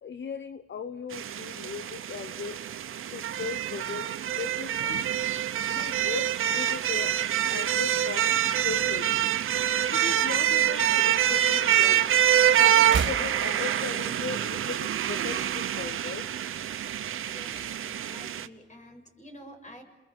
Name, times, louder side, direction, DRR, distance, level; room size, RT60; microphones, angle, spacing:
voice 1, 0.0-2.6 3.1-5.1 5.7-7.2 7.5-8.4 8.6-9.4 9.9-12.1 12.6-16.3, left 6 dB, 65° left, 12 dB, 0.9 m, -38 dB
sound 1, 1.1-18.5, right 11 dB, 85° right, 0.9 m, -26 dB
sound 2, 5.7-8.0 8.3-8.6 8.9-10.4 10.6-12.0 12.3-14.4 14.6-14.7, right 6 dB, 65° right, 2.1 m, -38 dB
voice 2, 17.2-19.8, equal, 35° left, 4 dB, 6.9 m, -49 dB
29.5 x 22.0 x 7.9 m, 1.2 s
cardioid pair, 65°, 21 cm